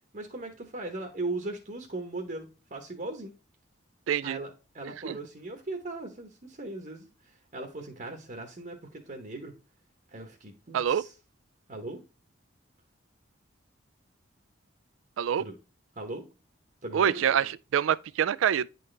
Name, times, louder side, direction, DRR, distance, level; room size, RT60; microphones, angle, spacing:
voice 1, 0.1-3.3 4.2-9.5 10.1-11.1 11.7-12.0 15.4-15.5 16.0-16.2 16.8-17.2, right 2 dB, 40° right, 0.9 m, -38 dB
voice 2, 4.1-4.4 5.0-5.2 10.7-11.0 15.2-15.4 16.9-18.7, right 8 dB, 85° right, 0.3 m, -26 dB
9.4 x 4.0 x 3.2 m
head